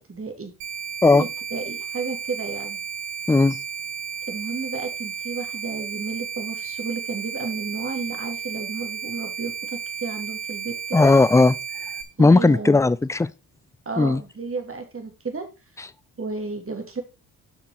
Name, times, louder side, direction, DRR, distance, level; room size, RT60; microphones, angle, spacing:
voice 1, 0.1-0.5 1.0-2.8 4.3-11.0 12.2-12.8 13.9-15.5 16.2-17.0, right 4 dB, 30° right, 2.9 m, -32 dB
sound 1, 0.6-12.0, right 6 dB, 85° right, 1.2 m, -33 dB
voice 2, 3.3-3.6 10.9-11.9 12.2-13.3 14.0-14.2 15.8-15.9, left 3 dB, 5° left, 0.4 m, -17 dB
8.6 x 5.9 x 4.3 m
hypercardioid pair, 45°, 46 cm